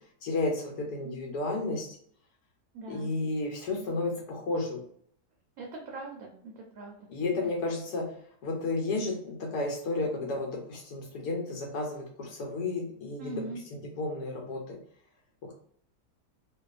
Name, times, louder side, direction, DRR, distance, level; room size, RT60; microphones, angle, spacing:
voice 1, 0.2-2.0 2.9-4.8 7.1-8.1 8.4-13.4 13.7-14.8, left 2 dB, 75° left, -1 dB, 1.1 m, -32 dB
voice 2, 2.7-3.1 5.6-7.1 13.2-13.6, right 2 dB, 70° right, -1 dB, 0.9 m, -41 dB
2.6 x 2.3 x 2.3 m, 0.62 s
omnidirectional pair, 1.8 m